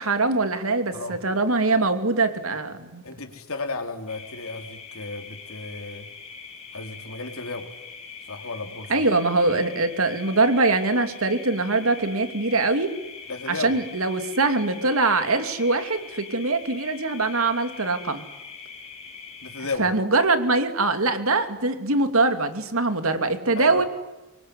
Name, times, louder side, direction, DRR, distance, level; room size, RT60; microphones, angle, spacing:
voice 1, 0.0-3.0 8.9-12.9 13.5-18.2 19.8-23.9, right 3 dB, 70° right, 8 dB, 2.9 m, -23 dB
voice 2, 3.0-6.1 6.7-7.8 8.3-9.1 13.3-13.8 19.4-19.9 23.6-23.9, left 3 dB, 70° left, 5 dB, 3.8 m, -33 dB
sound 1, 4.1-19.8, left 5 dB, 30° left, 4.8 m, -42 dB
25.5 x 23.5 x 10.0 m, 1.1 s
head